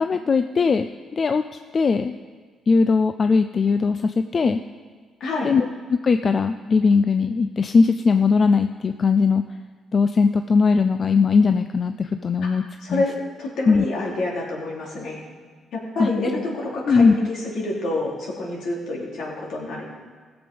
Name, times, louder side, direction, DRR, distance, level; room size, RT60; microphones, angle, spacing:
voice 1, 0.0-1.4 1.7-2.2 2.7-4.6 5.4-9.4 9.9-13.0 13.7-13.9 16.0-16.1 16.9-17.3, left 4 dB, 40° left, 9 dB, 0.4 m, -19 dB
voice 2, 5.2-5.5 12.4-12.6 12.8-13.1 13.4-15.2 15.7-19.9, left 2 dB, 70° left, -3 dB, 3.4 m, -28 dB
17.0 x 6.9 x 5.3 m, 1.5 s
cardioid pair, 90°, 0 cm